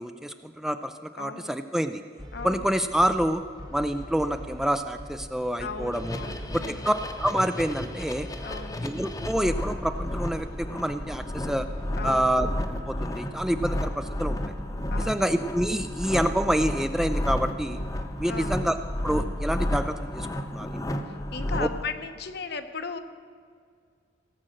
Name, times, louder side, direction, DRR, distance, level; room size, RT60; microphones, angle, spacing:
voice 1, 0.0-2.0 2.4-3.4 3.7-6.2 6.5-8.3 8.8-11.7 12.0-12.5 12.9-14.4 15.0-17.8 18.2-18.8 19.0-20.3 20.5-20.9 21.6-21.7, equal, 5° right, 9 dB, 0.3 m, -27 dB
voice 2, 1.2-1.5 2.3-2.7 5.6-6.9 8.4-8.8 12.0-12.3 14.9-15.2 18.3-18.6 21.1-23.0, left 4 dB, 60° left, 9 dB, 0.8 m, -36 dB
sound 1, 2.2-20.3, equal, 20° right, 1.1 m, -42 dB
sound 2, 5.9-21.8, left 1 dB, 20° left, 0.8 m, -32 dB
17.5 x 7.6 x 6.4 m, 2.1 s
head